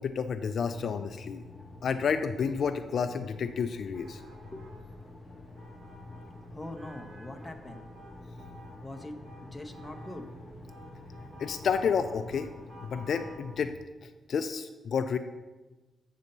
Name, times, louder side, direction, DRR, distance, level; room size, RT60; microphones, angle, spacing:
voice 1, 0.0-1.4 1.8-4.2 11.4-12.5 12.8-13.7 14.3-15.2, left 6 dB, 55° left, 9 dB, 0.4 m, -30 dB
sound 1, 0.6-13.7, left 2 dB, 30° left, 1.0 m, -48 dB
sound 2, 3.9-13.4, right 1 dB, 45° right, 2.8 m, -52 dB
voice 2, 6.5-7.9 8.8-9.2 9.4-10.3, left 1 dB, 10° left, 4 dB, 0.7 m, -42 dB
8.2 x 4.1 x 6.5 m, 1.2 s
wide cardioid pair, 140°, 0 cm